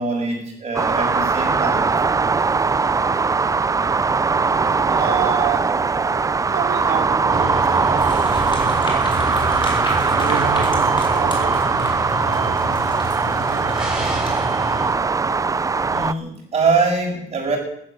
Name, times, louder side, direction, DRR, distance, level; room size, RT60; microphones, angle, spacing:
voice 1, 0.0-1.9 15.9-17.6, right 4 dB, 40° right, 6.7 m, -23 dB
sound 1, 0.7-16.1, right 4 dB, 20° right, 0.6 m, -20 dB
voice 2, 4.9-5.8 6.5-9.8 10.0-12.8 13.3-13.9, right 9 dB, 65° right, 3.1 m, -30 dB
sound 2, 7.3-14.9, equal, 5° right, 7.4 m, -30 dB
sound 3, 8.0-14.4, left 2 dB, 30° left, 5.2 m, -36 dB
15.0 x 12.0 x 7.4 m
cardioid pair, 110°, 17 cm